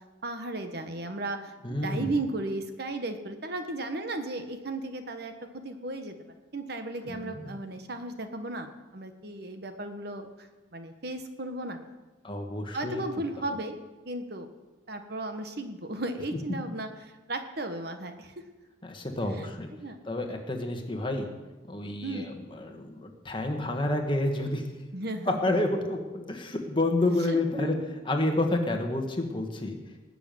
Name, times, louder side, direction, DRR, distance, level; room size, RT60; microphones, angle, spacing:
voice 1, 0.2-6.2 6.5-11.8 12.7-13.8 14.0-14.5 14.9-18.4 19.3-20.0 22.0-22.3 24.9-25.6 27.3-27.9, right 2 dB, 50° right, 7 dB, 1.4 m, -35 dB
voice 2, 1.6-2.1 7.1-7.5 12.2-13.0 13.4-13.5 18.8-19.7 20.1-21.3 21.7-24.7 25.3-27.8 28.1-29.8, left 2 dB, 25° left, 3 dB, 1.8 m, -29 dB
19.0 x 7.0 x 9.3 m, 1.2 s
head